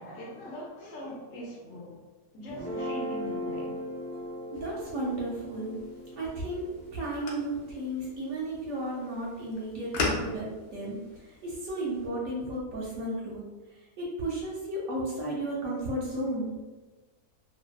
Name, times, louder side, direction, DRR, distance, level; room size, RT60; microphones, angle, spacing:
voice 1, 0.0-2.0 2.3-3.7, equal, 65° left, -3 dB, 0.8 m, -42 dB
Guitar, 2.5-8.8, equal, 10° left, 0.4 m, -39 dB
sound 1, 4.5-12.1, left 3 dB, 85° left, 0.5 m, -39 dB
voice 2, 4.5-5.8 6.2-16.5, right 1 dB, 70° right, -4 dB, 0.9 m, -34 dB
2.6 x 2.2 x 2.2 m, 1.2 s
omnidirectional pair, 1.7 m